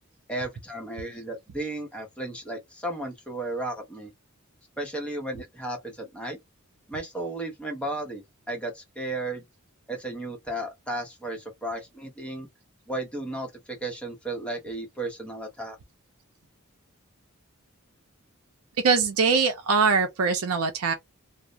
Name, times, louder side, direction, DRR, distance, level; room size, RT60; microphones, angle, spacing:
voice 1, 0.3-4.1 4.8-6.4 6.9-8.2 8.5-9.4 9.9-12.5 12.9-15.8, right 1 dB, 5° left, 0.8 m, -34 dB
voice 2, 18.8-20.9, right 5 dB, 85° right, 0.5 m, -22 dB
2.3 x 2.0 x 2.8 m
head